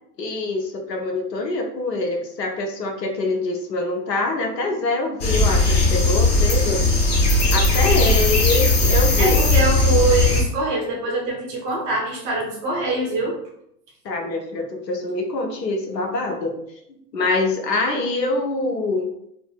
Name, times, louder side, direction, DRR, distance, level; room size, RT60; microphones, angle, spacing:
voice 1, 0.2-6.8 7.5-9.4 14.0-16.6 17.1-19.1, left 2 dB, 90° left, 2 dB, 0.8 m, -24 dB
sound 1, 5.2-10.4, left 2 dB, 30° left, 0.5 m, -18 dB
voice 2, 7.8-8.2 9.2-13.4, right 2 dB, 25° right, -2 dB, 0.5 m, -24 dB
2.6 x 2.4 x 2.2 m, 0.74 s
hypercardioid pair, 115°, 48 cm